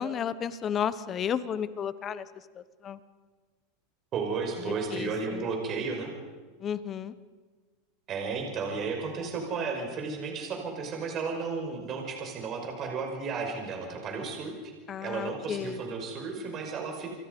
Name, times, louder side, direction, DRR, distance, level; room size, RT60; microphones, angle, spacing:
voice 1, 0.0-2.3 2.5-3.0 4.6-5.4 6.6-7.1 14.9-15.9, left 8 dB, 30° left, 15 dB, 1.1 m, -33 dB
voice 2, 4.1-6.1 8.1-14.5 15.0-17.2, right 4 dB, 35° right, 2 dB, 5.5 m, -33 dB
28.0 x 24.0 x 5.4 m, 1.4 s
supercardioid pair, 140°, 0 cm